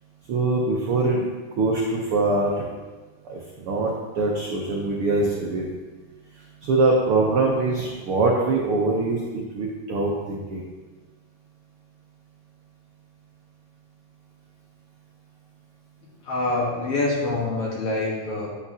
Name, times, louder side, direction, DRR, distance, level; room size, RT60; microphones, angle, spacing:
voice 1, 0.3-1.3 1.6-2.6 3.2-5.7 6.6-10.6, right 3 dB, 80° right, -2 dB, 1.2 m, -23 dB
voice 2, 16.2-18.5, left 2 dB, 55° left, -4 dB, 2.0 m, -25 dB
9.0 x 8.2 x 2.8 m, 1.3 s
omnidirectional pair, 3.7 m